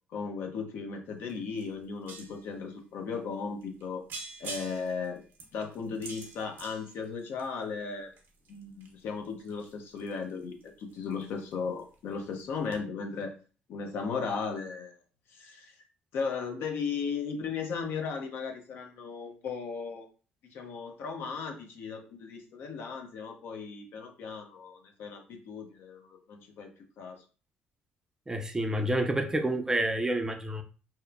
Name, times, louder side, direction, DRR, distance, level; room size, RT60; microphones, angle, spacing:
voice 1, 0.1-4.0 4.4-5.2 5.5-8.1 8.5-13.3 13.7-15.0 15.3-15.7 16.1-20.1 20.5-26.7 27.0-27.2, left 5 dB, 70° left, 0.6 m, -36 dB
sound 1, 1.3-1.4 1.6-2.5 3.1-3.2 3.6-3.8 4.1-7.6 8.1-11.5 11.8-12.1 12.4-12.5 12.7-12.8, right 3 dB, 65° right, 0.7 m, -45 dB
voice 2, 28.3-30.6, right 1 dB, 15° right, 0.4 m, -29 dB
2.8 x 2.1 x 2.3 m
supercardioid pair, 75°, 4 cm